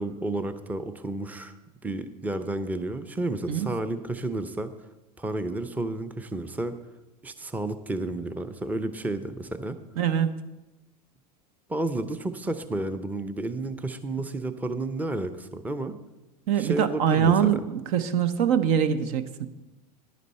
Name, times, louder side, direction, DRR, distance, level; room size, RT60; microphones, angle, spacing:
voice 1, 0.0-1.6 1.8-4.7 5.2-6.7 7.2-9.8 11.7-16.0 16.6-17.6, right 2 dB, 10° right, 11 dB, 0.6 m, -31 dB
voice 2, 10.0-10.3 16.5-19.5, right 8 dB, 60° right, 12 dB, 0.8 m, -23 dB
10.5 x 9.3 x 4.3 m, 1.0 s
hypercardioid pair, 95°, 21 cm